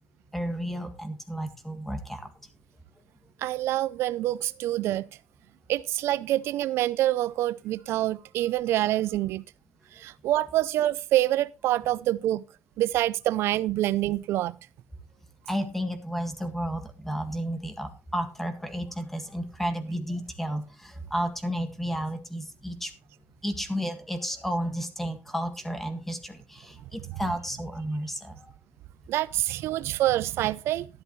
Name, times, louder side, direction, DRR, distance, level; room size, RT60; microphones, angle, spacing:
voice 1, 0.3-2.3 15.5-22.9 23.4-28.5, equal, 5° left, 1.7 m, -32 dB
voice 2, 3.4-5.1 5.7-9.4 10.0-12.4 12.8-14.5 29.1-30.9, right 14 dB, 65° right, 0.4 m, -26 dB
12.5 x 11.0 x 3.1 m
cardioid pair, 130°, 5 cm